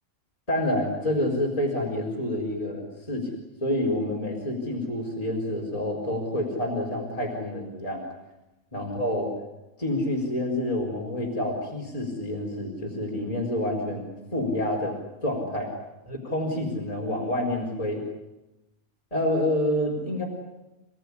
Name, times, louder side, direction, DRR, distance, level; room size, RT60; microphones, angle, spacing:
voice 1, 0.5-3.3 3.6-8.0 8.7-9.3 9.8-15.0 15.2-15.7 16.1-18.0 19.1-20.2, left 1 dB, 25° left, -2 dB, 4.6 m, -28 dB
29.5 x 18.5 x 10.0 m, 1.0 s
omnidirectional pair, 1.3 m